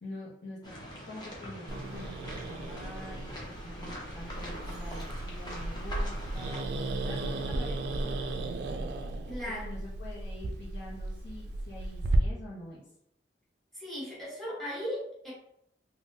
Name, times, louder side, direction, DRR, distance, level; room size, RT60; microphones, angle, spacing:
voice 1, 0.0-0.7 1.1-6.7 7.0-8.9 9.4-12.8, left 1 dB, 70° left, -8 dB, 0.7 m, -46 dB
sound 1, 0.6-6.6, equal, 25° left, 0.7 m, -43 dB
Growling, 1.7-12.2, right 2 dB, 65° right, 0.3 m, -35 dB
voice 2, 9.3-9.7 13.7-15.3, equal, ahead, -6 dB, 1.1 m, -37 dB
3.5 x 2.2 x 2.7 m, 0.76 s
head